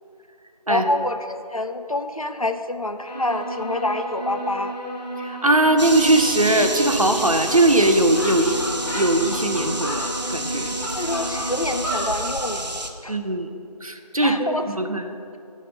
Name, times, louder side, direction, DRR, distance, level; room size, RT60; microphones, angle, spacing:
voice 1, 0.7-4.8 10.9-13.2 14.2-14.9, left 2 dB, 60° left, 8 dB, 0.5 m, -27 dB
sound 1, 3.1-11.9, right 1 dB, 80° left, 1.7 m, -33 dB
voice 2, 5.2-8.6 8.9-10.8 13.1-13.5 13.8-15.2, right 1 dB, 60° right, 7 dB, 0.6 m, -20 dB
sound 2, 5.8-12.9, right 2 dB, 85° right, 0.9 m, -30 dB
sound 3, 7.5-7.6 7.8-7.9 8.1-10.0 10.6-12.5, equal, 30° right, 1.4 m, -31 dB
10.0 x 4.2 x 5.7 m, 2.6 s
figure-of-eight pair, 180°, 21 cm